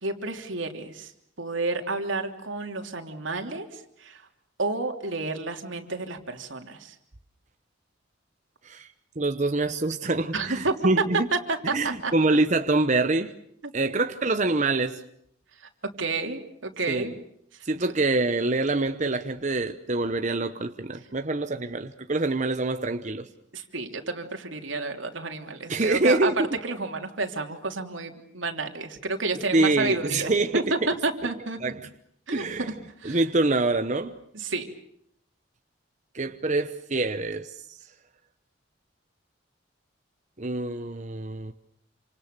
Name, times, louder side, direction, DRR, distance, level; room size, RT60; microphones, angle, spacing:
voice 1, 0.0-1.1 1.4-4.2 4.6-6.9 10.3-10.7 11.3-12.1 13.6-14.0 15.6-15.7 16.0-17.1 17.7-17.9 23.5-26.3 26.6-31.6 32.3-32.7 33.0-33.2 34.3-34.7, right 3 dB, 85° right, 4 dB, 3.2 m, -30 dB
voice 2, 8.6-11.3 11.7-13.3 13.7-15.0 16.9-17.1 17.6-23.3 25.7-26.5 29.5-30.7 31.6-31.9 32.3-32.7 33.0-34.1 36.1-37.6 40.4-41.5, right 2 dB, 40° right, 8 dB, 1.0 m, -25 dB
28.0 x 26.5 x 6.8 m, 0.72 s
head